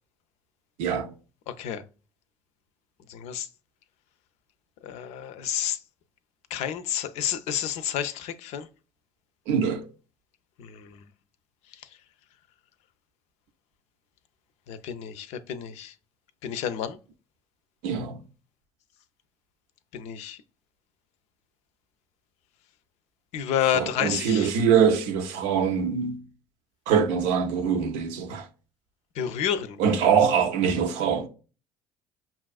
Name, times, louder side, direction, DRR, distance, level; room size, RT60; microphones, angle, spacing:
voice 1, 1.5-1.8 3.1-3.5 4.8-5.8 6.5-8.7 10.6-11.0 14.7-15.9 16.4-17.0 19.9-20.4 23.3-24.5 29.2-29.8, left 9 dB, 65° left, 0.5 m, -30 dB
voice 2, 9.5-9.8 17.8-18.2 23.7-26.2 26.9-28.5 29.8-31.3, right 7 dB, 75° right, 0.6 m, -23 dB
5.4 x 2.4 x 2.3 m
hypercardioid pair, 65°, 12 cm